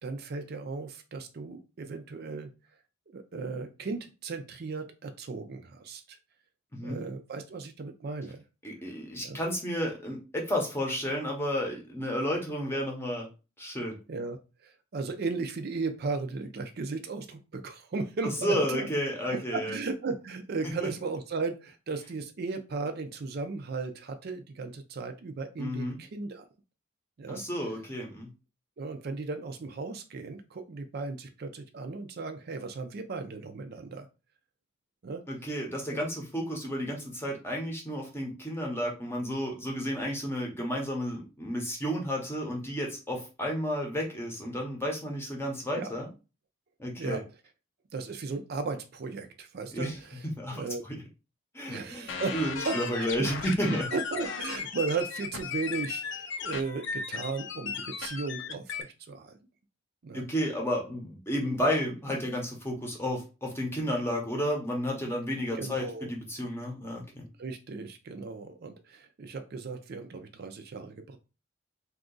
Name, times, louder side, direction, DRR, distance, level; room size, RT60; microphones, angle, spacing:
voice 1, 0.0-2.5 3.1-6.2 6.8-8.4 9.2-9.4 14.1-14.4 14.6-18.9 19.3-26.5 27.2-27.4 28.8-34.1 35.0-35.2 35.9-36.0 45.7-45.9 47.0-47.2 47.9-50.8 51.7-52.4 52.7-59.4 60.0-60.2 65.5-66.1 67.4-71.2, right 4 dB, 50° right, 7 dB, 0.4 m, -36 dB
voice 2, 8.6-13.3 13.6-14.0 18.2-19.8 25.6-26.0 27.3-28.3 35.3-46.1 46.8-47.2 49.7-49.9 50.4-50.7 51.5-53.9 60.1-67.2, equal, 10° left, 0 dB, 0.8 m, -32 dB
sound 1, 52.1-58.8, left 6 dB, 60° left, 0.4 m, -36 dB
2.7 x 2.4 x 3.7 m, 0.30 s
head